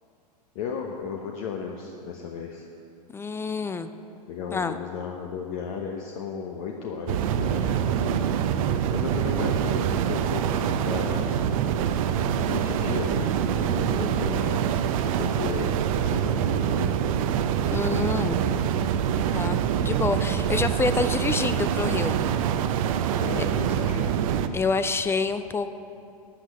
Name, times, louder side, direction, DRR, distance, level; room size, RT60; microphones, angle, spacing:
voice 1, 0.5-2.7 4.3-8.2 8.9-11.3 12.4-14.7 15.0-17.1 18.1-18.9 23.2-24.1, left 6 dB, 55° left, 1 dB, 1.0 m, -35 dB
voice 2, 3.1-3.9 4.5-4.8 17.7-18.4 19.3-22.2 24.5-25.7, left 4 dB, 10° left, 10 dB, 0.3 m, -27 dB
sound 1, 7.1-24.5, right 9 dB, 55° right, 0.7 m, -25 dB
12.0 x 6.4 x 7.7 m, 2.6 s
hypercardioid pair, 100°, 21 cm